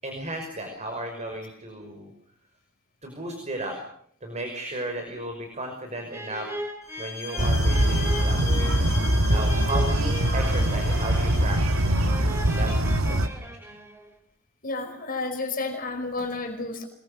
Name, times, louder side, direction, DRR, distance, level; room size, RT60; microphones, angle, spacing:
voice 1, 0.0-2.1 3.0-3.7 4.2-6.5 7.0-8.9 9.3-12.1 12.5-13.6, right 1 dB, 35° right, 4 dB, 5.6 m, -35 dB
sound 1, 6.1-14.2, equal, 15° right, 3.0 m, -39 dB
sound 2, 6.8-12.1, left 5 dB, 15° left, 4.6 m, -38 dB
sound 3, 7.4-13.3, right 1 dB, 75° right, 2.0 m, -23 dB
voice 2, 14.6-16.8, left 3 dB, 45° left, 4 dB, 5.3 m, -31 dB
26.0 x 22.5 x 6.8 m, 0.64 s
head